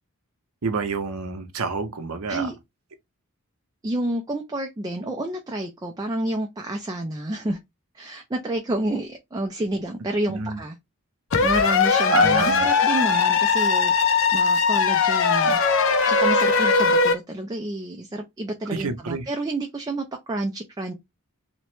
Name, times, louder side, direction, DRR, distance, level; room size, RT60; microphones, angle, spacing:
voice 1, 0.6-2.5 10.3-10.6 12.1-12.7 18.7-19.2, right 4 dB, 75° right, 0.6 m, -27 dB
voice 2, 3.8-7.6 7.9-10.8 11.4-15.6 16.1-20.9, right 1 dB, 20° right, 0.3 m, -29 dB
sound 1, 11.3-17.1, left 5 dB, 60° left, 0.5 m, -20 dB
2.9 x 2.1 x 3.1 m
head